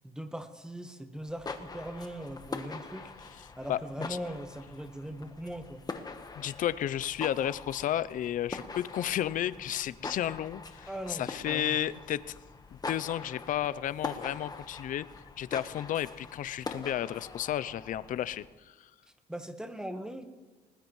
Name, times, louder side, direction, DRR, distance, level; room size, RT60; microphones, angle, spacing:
voice 1, 0.0-3.1 3.6-5.8 10.9-11.8 19.3-20.3, right 1 dB, 5° right, 7 dB, 1.3 m, -40 dB
sound 1, 1.2-18.5, left 4 dB, 25° left, 1.2 m, -43 dB
voice 2, 6.4-12.3 12.7-15.1 15.4-18.9, left 11 dB, 50° left, 17 dB, 0.5 m, -32 dB
20.0 x 20.0 x 3.1 m, 1.3 s
cardioid pair, 110°, 17 cm